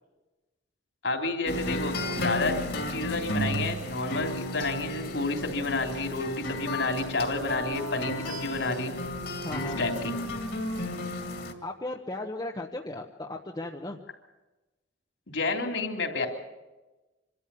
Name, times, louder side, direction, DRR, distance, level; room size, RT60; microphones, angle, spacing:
voice 1, 1.0-2.6 2.9-8.9 9.6-10.1 15.3-16.3, left 3 dB, 75° left, 3 dB, 3.4 m, -30 dB
sound 1, 1.5-11.5, equal, 55° left, 2.4 m, -33 dB
voice 2, 9.4-9.8 11.6-14.0, left 2 dB, 20° left, 1 dB, 1.0 m, -36 dB
25.5 x 13.5 x 8.4 m, 1.1 s
head